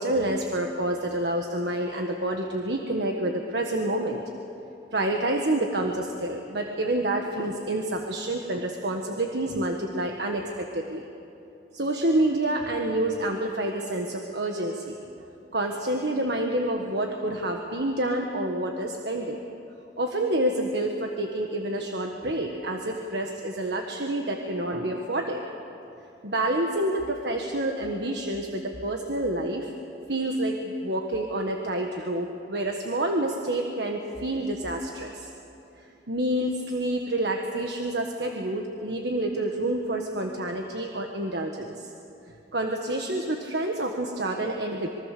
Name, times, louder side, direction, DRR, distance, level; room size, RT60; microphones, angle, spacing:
voice 1, 0.0-4.2 4.9-11.1 11.7-15.0 15.5-19.4 20.0-25.4 26.2-29.7 30.1-35.3 36.1-41.9 42.5-44.9, right 1 dB, 70° right, 2 dB, 1.5 m, -28 dB
26.0 x 23.0 x 6.8 m, 2.9 s
head